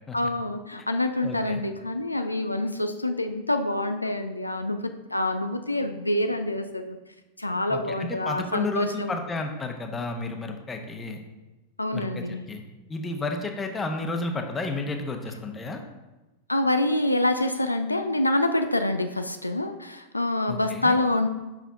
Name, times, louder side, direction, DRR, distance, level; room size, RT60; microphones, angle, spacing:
voice 1, 0.1-7.0 7.4-9.2 11.8-12.5 16.5-21.3, left 1 dB, 85° left, 7 dB, 0.3 m, -26 dB
voice 2, 1.2-1.6 7.7-11.2 11.9-12.6 12.9-15.8 20.5-21.0, left 3 dB, 15° left, 4 dB, 0.8 m, -32 dB
5.5 x 4.9 x 4.6 m, 1.1 s
figure-of-eight pair, 90°, 0 cm